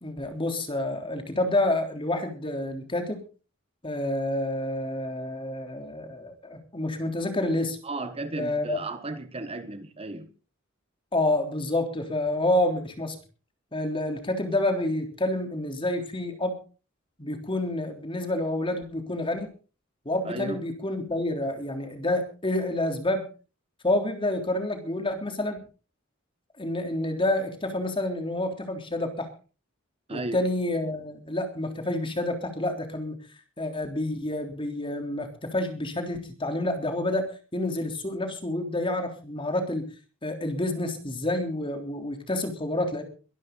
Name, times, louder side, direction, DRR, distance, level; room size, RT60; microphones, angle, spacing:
voice 1, 0.0-3.2 3.8-7.8 8.4-8.8 11.1-13.2 13.7-16.6 17.2-19.5 20.1-23.3 23.8-25.6 26.6-29.3 30.1-33.2 33.6-39.9 40.2-43.0, left 1 dB, 25° left, 3.5 m, -28 dB
voice 2, 7.8-10.3 20.2-20.6 30.1-30.5, right 2 dB, 30° right, 1.2 m, -34 dB
23.0 x 12.0 x 4.0 m
head